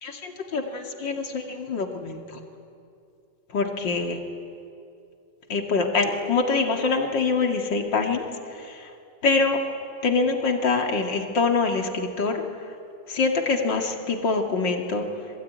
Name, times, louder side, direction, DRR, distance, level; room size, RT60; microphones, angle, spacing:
voice 1, 0.0-2.4 3.5-4.2 5.5-8.9 9.2-9.6 10.0-12.4 13.1-15.1, left 4 dB, 85° left, 3 dB, 2.9 m, -25 dB
26.5 x 21.5 x 9.4 m, 2.5 s
omnidirectional pair, 1.9 m